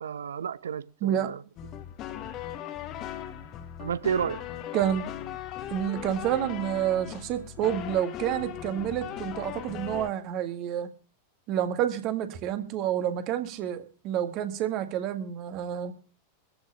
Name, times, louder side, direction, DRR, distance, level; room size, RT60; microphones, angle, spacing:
voice 1, 0.0-1.4 3.8-4.4, right 7 dB, 65° right, 0.6 m, -31 dB
voice 2, 1.0-1.3 4.7-5.1 5.7-10.9 11.5-15.9, right 10 dB, 40° right, 2.0 m, -29 dB
sound 1, 1.6-10.1, left 10 dB, 35° left, 1.6 m, -38 dB
14.0 x 6.4 x 8.8 m
figure-of-eight pair, 90°, 0 cm